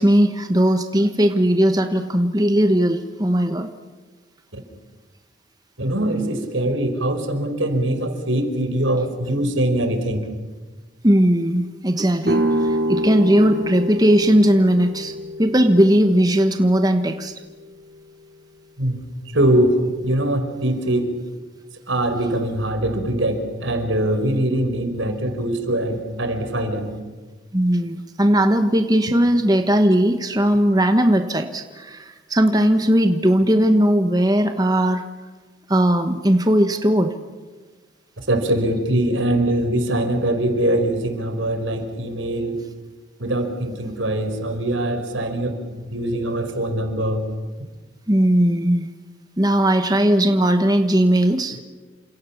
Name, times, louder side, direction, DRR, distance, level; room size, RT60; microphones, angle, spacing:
voice 1, 0.0-3.7 11.0-15.1 15.4-17.3 27.5-35.0 35.7-37.1 48.1-48.9 49.4-51.6, right 1 dB, 20° right, 7 dB, 1.3 m, -18 dB
voice 2, 5.8-10.2 18.8-19.8 20.0-21.1 21.9-27.0 38.3-42.6 43.2-47.2, right 1 dB, 80° right, 7 dB, 4.8 m, -22 dB
sound 1, 12.3-18.0, equal, 55° right, 2.8 m, -27 dB
29.5 x 27.0 x 7.2 m, 1.3 s
head